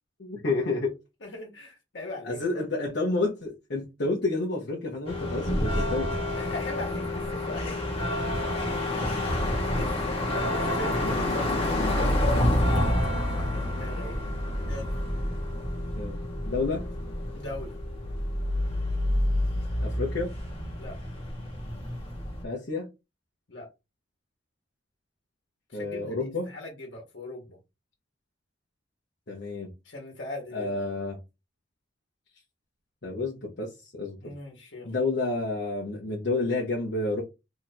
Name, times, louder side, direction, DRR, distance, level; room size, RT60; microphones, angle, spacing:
voice 1, 0.2-1.0 2.2-6.2 9.1-9.3 15.9-16.8 19.8-20.3 22.4-22.9 25.7-26.5 29.3-29.7 30.5-31.2 33.0-34.3 34.8-37.2, left 3 dB, 60° left, 0.9 m, -30 dB
voice 2, 1.2-2.4 6.3-8.2 8.9-9.2 9.7-11.7 12.0-12.6 13.3-14.2 14.7-14.9 17.3-17.8 20.7-21.0 23.5-23.7 25.7-27.6 29.8-30.8 34.2-34.9, left 2 dB, 75° left, 1.3 m, -39 dB
sound 1, 5.1-22.4, left 1 dB, 30° left, 1.3 m, -28 dB
3.0 x 2.6 x 4.3 m
head